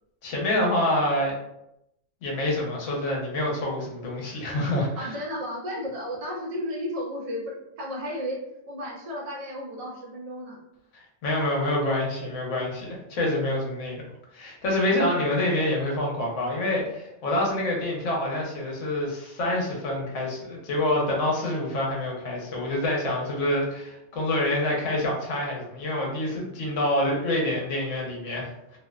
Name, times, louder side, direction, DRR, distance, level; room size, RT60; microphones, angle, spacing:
voice 1, 0.2-1.4 2.2-5.1 11.2-14.0 14.3-28.8, left 1 dB, 80° left, -1 dB, 1.1 m, -27 dB
voice 2, 5.0-8.4 8.7-10.7 14.8-15.3, equal, 50° right, -1 dB, 0.4 m, -34 dB
2.6 x 2.0 x 2.3 m, 0.83 s
omnidirectional pair, 1.3 m